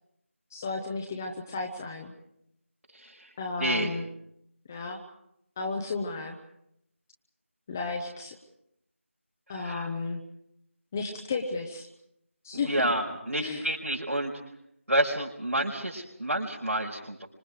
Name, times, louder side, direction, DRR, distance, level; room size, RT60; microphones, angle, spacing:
voice 1, 0.5-2.1 3.4-4.0 4.7-5.0 5.6-6.4 7.7-8.4 9.5-10.2 10.9-11.9 12.4-12.9 13.4-13.7, left 3 dB, 10° left, 2 dB, 0.9 m, -33 dB
voice 2, 2.9-3.3 3.6-3.9 9.5-9.9 12.5-14.3 14.9-17.3, right 1 dB, 80° right, -4 dB, 5.0 m, -29 dB
29.5 x 25.5 x 4.8 m, 0.77 s
figure-of-eight pair, 170°, 7 cm